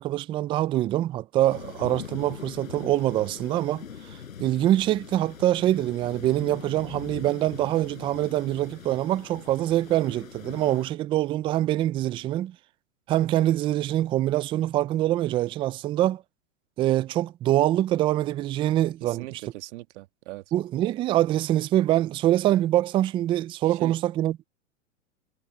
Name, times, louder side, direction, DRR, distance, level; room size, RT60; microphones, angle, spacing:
voice 1, 0.0-3.8 4.4-12.6 13.1-16.2 16.8-19.4 20.5-24.4, right 14 dB, 15° right, 0.3 m, -24 dB
sound 1, 1.5-10.9, left 7 dB, 90° left, 5.8 m, -42 dB
voice 2, 19.0-20.4 23.6-24.0, right 19 dB, 60° right, 1.7 m, -40 dB
hypercardioid pair, 115°, 40 cm